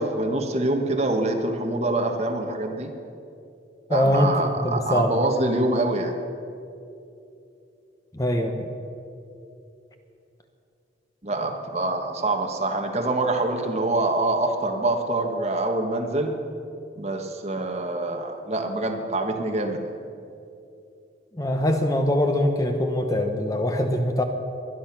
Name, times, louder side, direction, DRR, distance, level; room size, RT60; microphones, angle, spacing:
voice 1, 0.0-2.9 3.9-6.1 11.2-16.3 17.0-19.8, right 2 dB, 35° right, 3 dB, 1.4 m, -25 dB
voice 2, 3.9-5.2 8.1-8.7 21.4-24.2, left 1 dB, 20° left, 5 dB, 0.9 m, -23 dB
22.5 x 10.5 x 6.0 m, 2.7 s
head